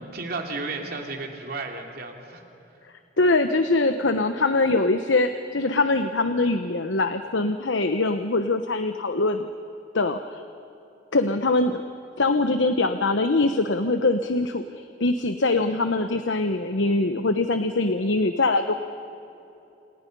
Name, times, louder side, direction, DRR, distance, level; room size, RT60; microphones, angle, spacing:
voice 1, 0.0-2.4, right 3 dB, 50° right, 2 dB, 3.1 m, -33 dB
voice 2, 3.2-9.5 9.9-10.4 11.1-11.8 12.2-18.7, left 2 dB, 80° left, 8 dB, 1.0 m, -23 dB
29.5 x 28.5 x 5.5 m, 3.0 s
head